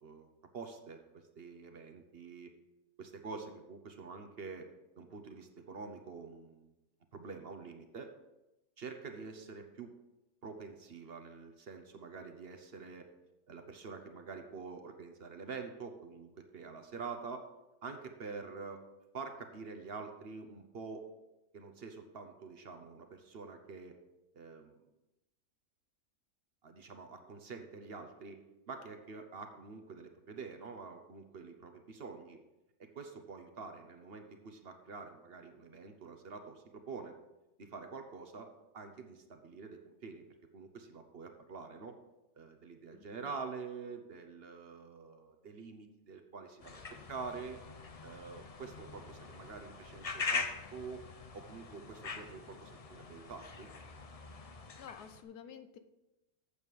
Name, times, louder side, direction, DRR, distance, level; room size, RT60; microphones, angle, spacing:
voice 1, 0.0-2.5 3.0-4.7 5.0-6.7 7.1-8.1 8.8-9.9 10.4-13.1 13.5-17.5 17.8-18.8 19.1-21.1 21.5-24.0 24.3-24.8 26.6-32.4 32.8-37.1 37.6-40.3 40.5-42.0 42.4-47.7 48.0-51.1 51.3-53.7, right 4 dB, 45° right, 5 dB, 1.0 m, -47 dB
voice 2, 42.9-43.3 54.8-55.8, left 8 dB, 85° left, 10 dB, 1.3 m, -51 dB
sound 1, 46.6-55.2, left 4 dB, 50° left, 0.4 m, -43 dB
8.4 x 7.2 x 4.8 m, 0.96 s
omnidirectional pair, 1.6 m